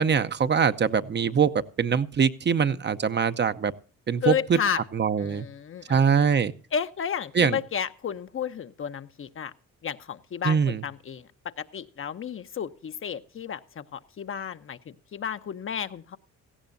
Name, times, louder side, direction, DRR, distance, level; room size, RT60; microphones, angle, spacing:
voice 1, 0.0-1.5 1.8-3.7 4.1-4.6 4.9-5.4 5.9-6.5 7.3-7.6 10.4-10.8, right 6 dB, 35° right, 11 dB, 0.7 m, -23 dB
voice 2, 4.2-4.8 5.2-6.0 6.7-9.5 9.8-16.2, left 8 dB, 45° left, 10 dB, 0.8 m, -32 dB
17.5 x 15.0 x 2.7 m, 0.40 s
cardioid pair, 90°, 30 cm